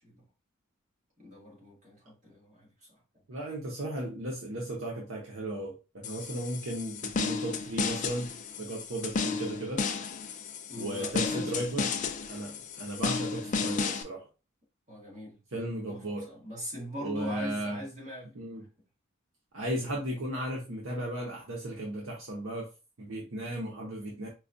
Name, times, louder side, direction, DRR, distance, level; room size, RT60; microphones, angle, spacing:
voice 1, 1.2-3.0 10.7-11.7 13.1-13.3 14.9-15.4 15.9-18.3, equal, 35° right, 1.9 m, -42 dB
voice 2, 3.3-9.8 10.8-11.9 12.3-14.3 15.5-16.3 17.0-17.8 18.3-18.6 19.5-22.7 23.0-24.3, right 1 dB, 70° right, 0.8 m, -35 dB
sound 1, 6.0-14.0, left 4 dB, 40° left, 0.4 m, -33 dB
4.6 x 2.3 x 2.6 m
head